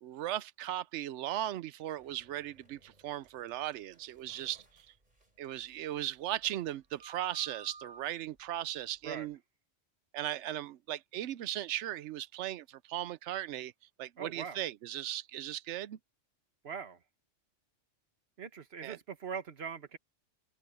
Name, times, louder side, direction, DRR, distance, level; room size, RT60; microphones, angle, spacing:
voice 1, 0.0-4.9 5.4-9.4 10.1-13.7 14.0-16.0 18.8-19.0, right 13 dB, 75° right, 0.9 m, -37 dB
sound 1, 2.0-9.3, right 3 dB, 35° right, 4.1 m, -57 dB
voice 2, 14.2-14.6 16.6-17.0 18.4-20.0, right 6 dB, 60° right, 1.5 m, -41 dB
omnidirectional pair, 1.2 m